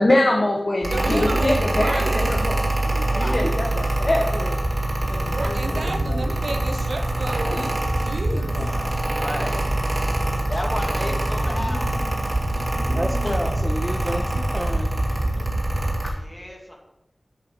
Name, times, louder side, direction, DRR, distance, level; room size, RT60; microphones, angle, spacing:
voice 1, 0.0-4.6 7.5-7.7 8.6-8.7 16.0-16.2, left 1 dB, 45° left, 0 dB, 1.3 m, -23 dB
Mechanical fan, 0.8-16.1, right 1 dB, 45° right, 2.1 m, -25 dB
voice 2, 0.9-2.5 3.2-3.4 5.1-8.5, right 2 dB, 80° right, 5 dB, 0.9 m, -32 dB
sound 1, 2.2-15.5, equal, 65° left, 2.3 m, -32 dB
voice 3, 3.1-3.5 9.0-9.7 10.5-12.0 16.0-16.8, left 1 dB, 20° left, -1 dB, 2.4 m, -32 dB
voice 4, 12.9-15.0, equal, 10° right, 3 dB, 1.5 m, -30 dB
10.0 x 5.0 x 6.1 m, 0.88 s
wide cardioid pair, 70°, 0 cm